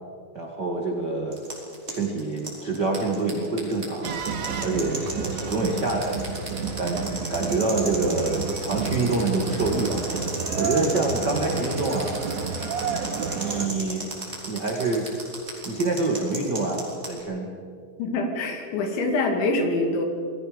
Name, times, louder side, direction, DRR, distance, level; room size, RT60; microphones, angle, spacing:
voice 1, 0.3-1.4 1.9-4.2 4.6-6.2 6.8-10.0 10.6-12.1 13.4-14.1 14.5-15.1 15.6-17.5, right 3 dB, 55° right, 0 dB, 1.1 m, -26 dB
sound 1, 1.3-17.1, right 2 dB, 15° right, 4.0 m, -34 dB
sound 2, 4.0-13.7, right 5 dB, 75° right, 3.8 m, -31 dB
voice 2, 18.0-20.1, left 2 dB, 80° left, 3 dB, 4.6 m, -25 dB
27.5 x 21.5 x 5.1 m, 2.3 s
omnidirectional pair, 5.2 m